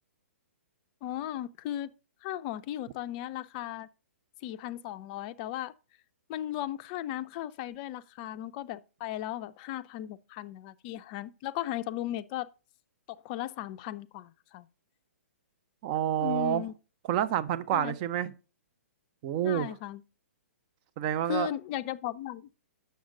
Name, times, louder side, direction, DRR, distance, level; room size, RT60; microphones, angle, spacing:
voice 1, 1.0-1.9 2.2-3.9 4.4-5.7 6.3-12.5 13.1-14.7 16.2-16.7 17.7-17.9 19.4-20.0 21.3-22.5, left 12 dB, 35° left, 0.5 m, -36 dB
voice 2, 15.8-16.6 17.1-18.3 19.2-19.7 21.0-21.5, right 10 dB, 35° right, 0.6 m, -28 dB
7.8 x 6.6 x 3.8 m
figure-of-eight pair, 120°, 8 cm